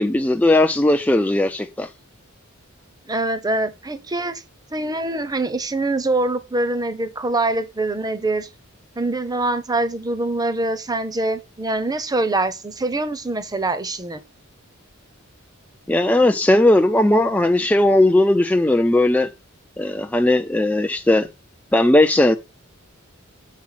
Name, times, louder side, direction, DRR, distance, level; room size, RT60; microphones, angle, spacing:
voice 1, 0.0-1.9 15.9-19.3 19.8-21.3 21.7-22.4, left 1 dB, 10° left, 0.4 m, -17 dB
voice 2, 3.1-4.4 4.7-8.5 9.0-14.2, right 2 dB, 20° right, 0.8 m, -24 dB
7.4 x 4.7 x 5.7 m
head